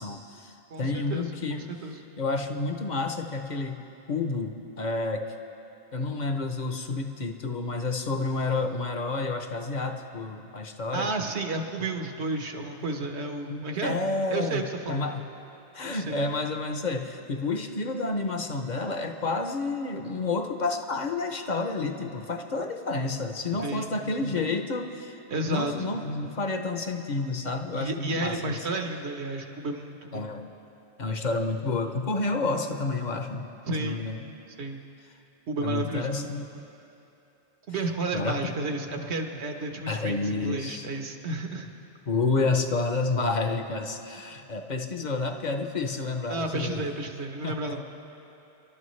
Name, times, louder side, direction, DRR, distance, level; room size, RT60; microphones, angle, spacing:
voice 1, 0.0-1.7 2.2-3.8 4.1-5.2 5.9-11.1 13.0-13.1 13.5-15.3 15.7-25.2 25.4-28.6 30.1-30.5 31.0-33.5 33.8-34.1 35.6-36.6 38.1-38.6 38.9-39.1 39.9-40.9 42.1-46.8 47.4-47.8, left 3 dB, 45° left, 6 dB, 0.8 m, -30 dB
voice 2, 0.7-2.0 10.9-14.0 14.3-15.0 15.9-16.3 23.6-23.9 24.3-24.5 25.3-25.9 27.7-30.3 33.7-34.0 34.6-34.8 35.5-36.1 37.7-41.7 46.3-47.8, right 2 dB, 75° right, 4 dB, 1.3 m, -32 dB
30.0 x 12.0 x 3.2 m, 2.9 s
omnidirectional pair, 1.1 m